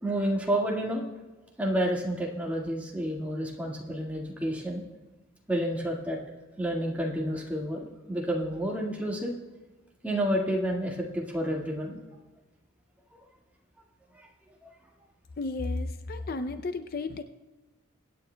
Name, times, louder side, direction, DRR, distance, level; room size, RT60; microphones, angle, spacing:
voice 1, 0.0-1.0 1.6-4.8 5.5-6.2 6.6-9.3 10.0-12.0 14.6-14.7, equal, 5° right, -3 dB, 1.8 m, -30 dB
voice 2, 15.4-17.2, left 3 dB, 45° left, 8 dB, 0.5 m, -33 dB
23.5 x 9.4 x 2.2 m, 1.2 s
head